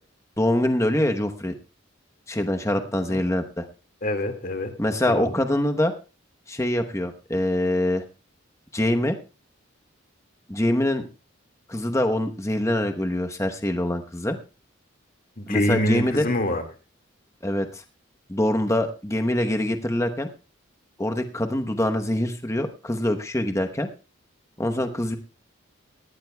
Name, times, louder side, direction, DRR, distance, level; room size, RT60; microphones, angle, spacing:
voice 1, 0.4-1.5 2.3-3.6 4.8-5.9 6.5-8.0 8.7-9.2 10.5-11.1 11.7-14.4 15.5-16.3 17.4-17.8 18.3-20.3 21.0-23.9 24.6-25.2, left 1 dB, 15° left, 5 dB, 0.9 m, -24 dB
voice 2, 4.0-4.7 5.1-5.3 15.4-16.6, left 1 dB, 45° left, 5 dB, 1.9 m, -25 dB
18.5 x 14.0 x 2.2 m, 0.32 s
head